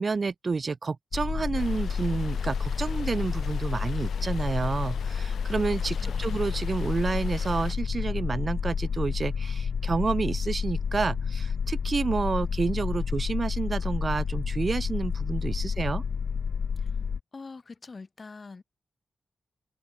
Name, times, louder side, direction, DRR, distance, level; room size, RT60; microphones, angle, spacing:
voice 1, 0.0-16.0, right 4 dB, 45° right, 2.1 m, -29 dB
sound 1, 1.1-17.2, left 6 dB, 65° left, 2.5 m, -30 dB
sound 2, 1.5-7.7, left 8 dB, 90° left, 7.3 m, -45 dB
voice 2, 5.9-6.3 16.8-16.9 17.3-18.6, left 4 dB, 40° left, 5.9 m, -44 dB
wide cardioid pair, 100°, 0 cm